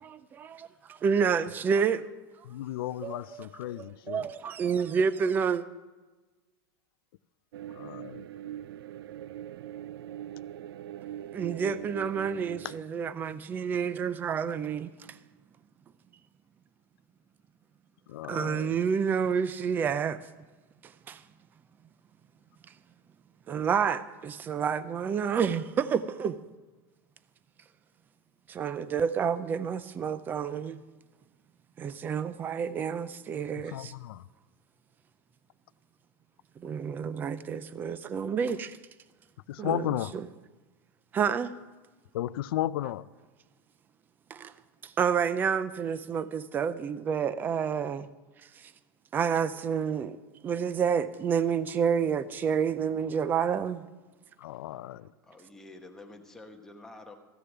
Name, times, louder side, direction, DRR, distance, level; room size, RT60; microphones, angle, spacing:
voice 1, 0.0-2.1 3.0-5.6 11.3-15.2 18.3-20.2 20.8-21.2 23.5-26.4 28.5-30.8 31.8-33.9 36.6-38.8 39.6-40.3 41.1-41.5 44.3-44.5 44.8-48.1 48.6-48.7 49.1-53.8, right 7 dB, 15° right, 0.4 m, -29 dB
voice 2, 0.6-0.9 55.2-57.2, left 2 dB, 5° left, 1.1 m, -49 dB
voice 3, 2.4-4.3 7.7-8.3 12.6-12.7 18.1-18.7 33.6-34.2 39.5-40.1 42.1-43.1 54.4-55.1, left 14 dB, 70° left, 0.5 m, -34 dB
sound 1, 7.5-12.8, right 11 dB, 80° right, 0.4 m, -41 dB
14.5 x 6.7 x 8.9 m
supercardioid pair, 160°, 13 cm